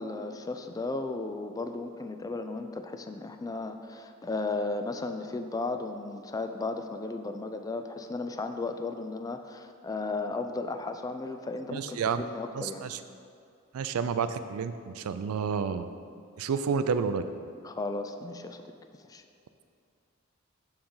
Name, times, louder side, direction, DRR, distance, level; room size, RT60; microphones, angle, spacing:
voice 1, 0.0-12.9 17.6-18.6 19.0-19.2, left 3 dB, 15° left, 7 dB, 0.3 m, -35 dB
voice 2, 11.7-12.2 12.5-13.0 13.7-15.9 16.4-17.2, right 6 dB, 85° right, 11 dB, 0.4 m, -30 dB
6.9 x 3.8 x 5.5 m, 2.4 s
head